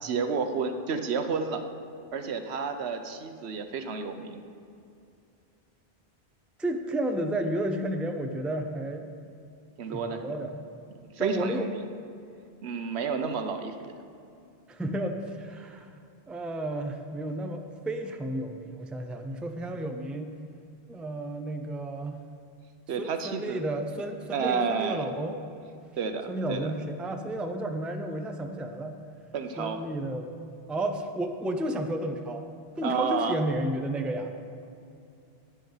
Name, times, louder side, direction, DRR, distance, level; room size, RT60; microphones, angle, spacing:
voice 1, 0.0-1.6 2.1-4.4 9.8-10.3 11.1-11.8 12.6-13.9 22.9-23.6 24.3-25.1 26.0-26.7 29.3-29.8 32.8-33.3, right 5 dB, 80° right, 7 dB, 1.1 m, -30 dB
voice 2, 6.6-9.1 9.9-10.5 11.2-11.7 14.7-16.0 16.3-20.3 20.9-22.2 23.0-25.4 26.3-29.0 29.6-30.3 30.7-32.4 32.8-34.3, right 1 dB, ahead, 5 dB, 0.4 m, -32 dB
12.5 x 9.7 x 4.0 m, 2.6 s
omnidirectional pair, 1.1 m